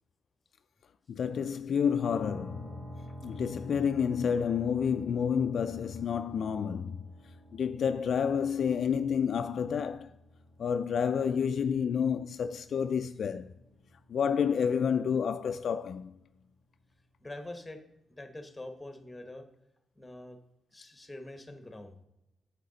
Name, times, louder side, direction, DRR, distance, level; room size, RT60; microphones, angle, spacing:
voice 1, 1.1-2.9 3.2-7.0 7.5-10.1 10.6-13.5 14.1-16.1, left 7 dB, 55° left, 0.3 m, -29 dB
sound 1, 2.0-15.7, equal, 30° right, 2.5 m, -50 dB
voice 2, 17.2-17.8 18.1-19.4 20.0-20.4 20.7-21.9, left 1 dB, 10° left, 1.0 m, -44 dB
9.1 x 7.0 x 3.9 m
cardioid pair, 125°, 0 cm